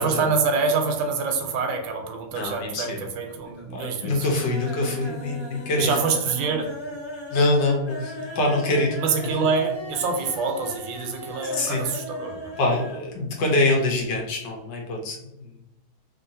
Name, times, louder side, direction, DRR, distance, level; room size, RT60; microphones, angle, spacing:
voice 1, 0.0-4.3 5.8-6.7 9.0-12.5, right 5 dB, 80° right, 4 dB, 1.3 m, -26 dB
voice 2, 2.3-3.1 3.7-6.0 7.3-9.0 11.5-11.8 12.6-15.5, left 2 dB, 70° left, 0 dB, 1.3 m, -24 dB
sound 1, 2.3-2.9 3.2-3.7 4.1-13.1 13.4-13.5 13.8-13.9, left 1 dB, 20° left, 0.8 m, -37 dB
3.1 x 2.8 x 2.6 m, 0.90 s
omnidirectional pair, 2.2 m